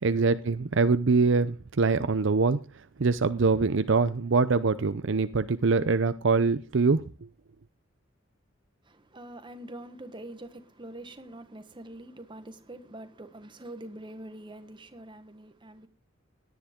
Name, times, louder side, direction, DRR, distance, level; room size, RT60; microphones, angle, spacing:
voice 1, 0.0-2.6 3.0-7.1, right 4 dB, 60° right, 0.6 m, -24 dB
voice 2, 8.8-15.9, right 1 dB, 25° right, 1.3 m, -44 dB
17.0 x 10.5 x 3.7 m
head